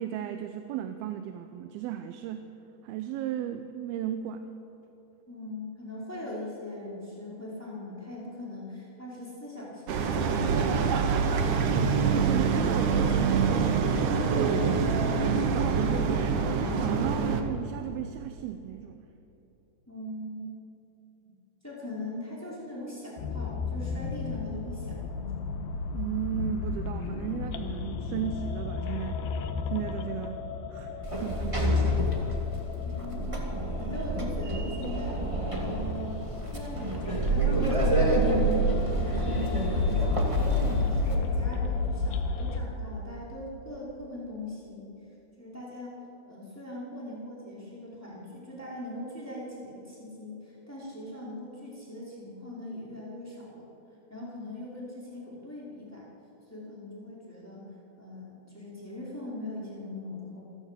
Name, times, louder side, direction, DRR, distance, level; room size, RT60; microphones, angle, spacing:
voice 1, 0.0-2.5 2.8-4.5 11.7-16.5 16.8-19.0 25.9-29.2 29.7-30.4 30.7-32.0, right 10 dB, 80° right, 8 dB, 2.6 m, -35 dB
voice 2, 5.3-11.3 19.9-20.5 21.6-25.5 32.8-44.9 45.4-53.7 54.1-56.1 56.5-57.6 58.0-60.5, left 1 dB, 5° left, -5 dB, 4.8 m, -41 dB
sound 1, 9.9-17.4, right 5 dB, 60° right, 2.5 m, -25 dB
sound 2, 23.2-42.6, left 4 dB, 85° left, 3.0 m, -33 dB
Sliding door, 31.0-41.2, right 1 dB, 10° right, 1.5 m, -28 dB
27.0 x 15.0 x 8.4 m, 3.0 s
omnidirectional pair, 4.5 m